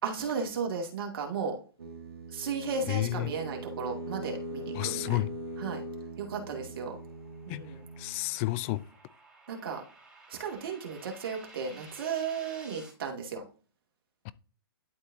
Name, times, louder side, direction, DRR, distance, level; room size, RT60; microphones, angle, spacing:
voice 1, 0.0-1.6 2.3-5.2 5.6-5.8 6.2-7.0 7.5-7.8 9.5-9.8 10.3-13.4, right 5 dB, 65° right, 2.2 m, -35 dB
sound 1, 1.8-8.3, right 1 dB, 85° right, 1.7 m, -41 dB
voice 2, 2.9-3.4 4.7-5.3 7.5-8.9 14.2-14.3, left 19 dB, 30° left, 0.4 m, -31 dB
sound 2, 6.1-12.9, right 3 dB, 5° right, 2.6 m, -54 dB
11.5 x 4.2 x 2.7 m
hypercardioid pair, 140°, 13 cm